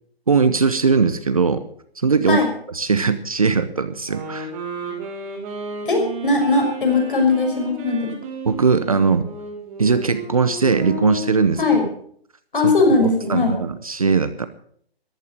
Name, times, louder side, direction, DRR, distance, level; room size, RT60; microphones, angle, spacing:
voice 1, 0.3-1.6 2.0-2.4 2.7-4.5 8.5-9.3 9.8-11.6 12.6-12.7 13.0-14.5, right 5 dB, 35° right, 11 dB, 0.8 m, -19 dB
sound 1, 4.0-11.6, right 1 dB, 15° right, 2.4 m, -33 dB
voice 2, 5.9-8.1 11.6-11.8 12.5-13.5, left 3 dB, 55° left, 3 dB, 6.2 m, -19 dB
14.5 x 12.0 x 6.5 m, 0.62 s
hypercardioid pair, 170°, 32 cm